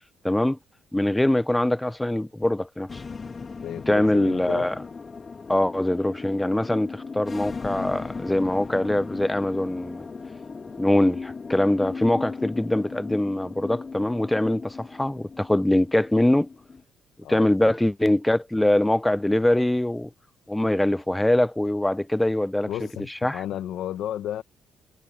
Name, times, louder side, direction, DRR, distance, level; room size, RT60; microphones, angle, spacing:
voice 1, 0.2-0.6 0.9-3.0 3.9-4.7 5.5-10.1 10.8-16.5 17.3-20.1 20.5-22.7 23.2-23.4, left 1 dB, 10° left, 0.4 m, -23 dB
sound 1, 2.9-16.8, left 4 dB, 35° left, 0.7 m, -37 dB
voice 2, 3.6-4.7 17.2-17.7 22.7-24.4, left 11 dB, 80° left, 1.3 m, -33 dB
cardioid pair, 80°, 0 cm